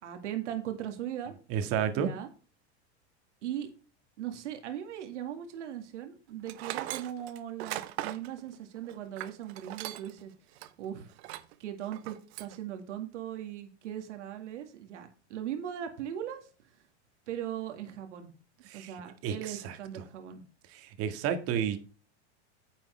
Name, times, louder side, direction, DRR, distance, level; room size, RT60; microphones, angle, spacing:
voice 1, 0.0-1.3 2.0-2.3 3.4-3.7 4.2-10.3 10.8-11.1 11.6-16.5 17.3-18.3 18.7-20.4, right 10 dB, 90° right, 2.0 m, -39 dB
voice 2, 1.5-2.1 18.7-18.9 19.2-20.0 20.7-21.8, right 8 dB, 40° right, 1.8 m, -31 dB
Tools, 6.5-10.2 10.6-10.7 11.2-11.5 11.9-12.6, right 15 dB, 65° right, 1.0 m, -39 dB
10.0 x 7.0 x 3.3 m
supercardioid pair, 135°, 35 cm